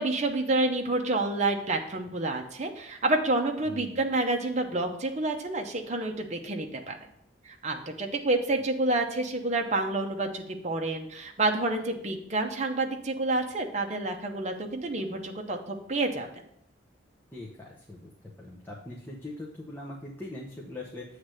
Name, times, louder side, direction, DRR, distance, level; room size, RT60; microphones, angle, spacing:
voice 1, 0.0-7.0 7.4-16.3, right 2 dB, 40° right, 3 dB, 0.8 m, -29 dB
voice 2, 3.7-4.0 17.3-18.1 18.4-21.0, left 2 dB, 10° left, -3 dB, 0.8 m, -41 dB
7.8 x 3.3 x 6.3 m, 0.74 s
head